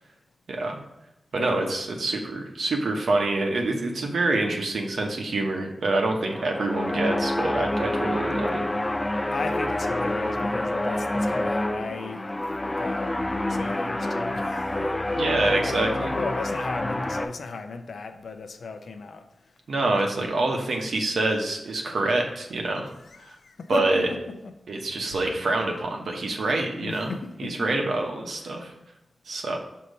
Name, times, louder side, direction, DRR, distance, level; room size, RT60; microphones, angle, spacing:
voice 1, 0.5-0.8 1.3-8.6 15.2-16.1 19.7-22.9 23.2-23.3 23.7-24.1 24.7-27.1 27.4-28.7 29.3-29.6, right 2 dB, 85° right, 0.9 m, -26 dB
voice 2, 1.4-1.7 9.3-12.3 12.8-19.3 20.4-20.7 23.0-24.5 25.0-25.2 26.7-27.7 28.5-28.6, left 4 dB, 75° left, 0.5 m, -36 dB
sound 1, 6.2-17.2, left 1 dB, 20° left, 0.4 m, -27 dB
6.4 x 2.8 x 5.2 m
wide cardioid pair, 135°, 0 cm